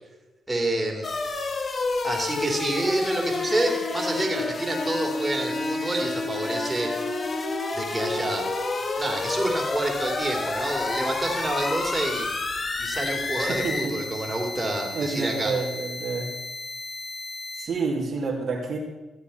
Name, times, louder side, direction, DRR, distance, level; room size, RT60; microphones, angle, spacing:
voice 1, 0.5-1.1 2.0-7.1 7.7-8.5 9.0-12.3 12.8-15.5, right 1 dB, 20° right, 1 dB, 3.1 m, -28 dB
sound 1, 1.0-17.7, left 3 dB, 45° left, 1.5 m, -30 dB
voice 2, 13.4-13.9 14.9-16.3 17.6-18.8, right 4 dB, 60° right, -2 dB, 2.6 m, -28 dB
15.0 x 8.1 x 5.7 m, 1.1 s
supercardioid pair, 60°, 0 cm